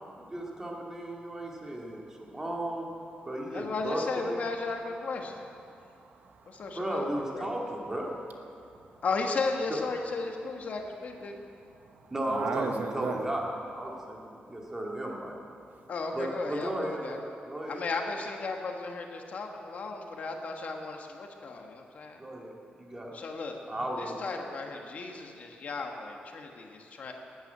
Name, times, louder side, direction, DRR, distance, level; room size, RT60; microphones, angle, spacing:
voice 1, 0.2-2.9 3.2-4.4 6.7-8.1 9.7-9.8 12.1-13.4 13.7-15.4 16.1-17.9 22.2-23.1 23.7-24.1, right 1 dB, 15° right, -2 dB, 2.1 m, -35 dB
voice 2, 3.5-5.5 6.5-7.5 9.0-11.4 15.9-17.2 17.7-22.2 23.1-23.6 24.0-27.1, left 3 dB, 50° left, 3 dB, 1.4 m, -35 dB
voice 3, 5.7-6.8 8.5-9.0 11.8-13.3, right 5 dB, 60° right, 5 dB, 1.0 m, -38 dB
13.0 x 9.5 x 9.2 m, 2.6 s
wide cardioid pair, 175°, 3 cm